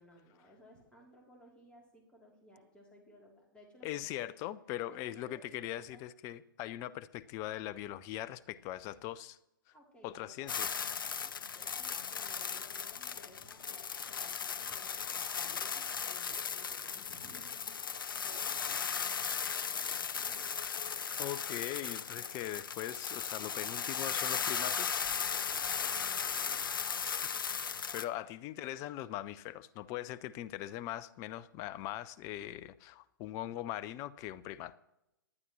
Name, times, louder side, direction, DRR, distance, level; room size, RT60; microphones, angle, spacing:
voice 1, 0.0-4.4 4.9-6.0 6.8-6.9 9.7-10.5 11.5-17.8 18.2-20.6 25.9-26.5, equal, 10° left, -2 dB, 3.3 m, -59 dB
voice 2, 3.8-9.4 10.0-10.8 21.2-25.0 27.0-27.4 27.6-34.7, left 13 dB, 25° left, 18 dB, 0.5 m, -41 dB
sound 1, 10.5-28.0, left 7 dB, 70° left, 0.7 m, -37 dB
19.0 x 11.0 x 3.1 m, 0.89 s
figure-of-eight pair, 125°, 12 cm